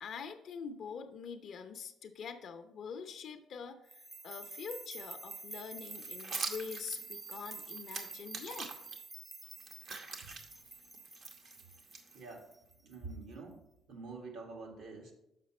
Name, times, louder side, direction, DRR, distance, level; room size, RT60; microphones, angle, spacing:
voice 1, 0.0-8.7, left 6 dB, 65° left, 7 dB, 0.6 m, -45 dB
sound 1, 3.9-13.0, right 3 dB, 20° right, 0.5 m, -48 dB
sound 2, 5.8-9.0 9.4-12.5, right 4 dB, 60° right, 0.9 m, -44 dB
voice 2, 12.1-12.5 12.8-13.6 13.9-15.1, right 3 dB, 80° right, 0 dB, 1.7 m, -46 dB
6.6 x 5.1 x 4.2 m, 0.83 s
cardioid pair, 85°, 0 cm